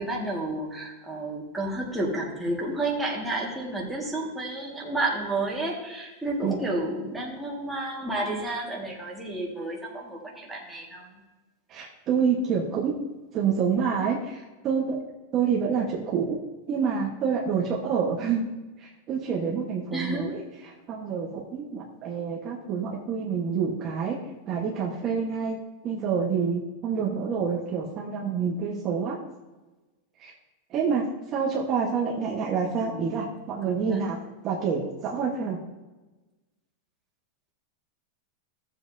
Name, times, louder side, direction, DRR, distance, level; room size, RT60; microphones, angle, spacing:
voice 1, 0.0-11.2 19.9-20.4 32.8-33.1 33.6-34.0, right 2 dB, 5° right, -4 dB, 1.8 m, -31 dB
voice 2, 11.7-13.0 13.3-15.0 15.3-16.4 16.7-18.5 18.8-25.6 25.8-29.2 30.2-30.3 30.7-35.6, right 6 dB, 30° right, -3 dB, 1.3 m, -28 dB
14.5 x 7.4 x 2.7 m, 1.1 s
supercardioid pair, 150°, 0 cm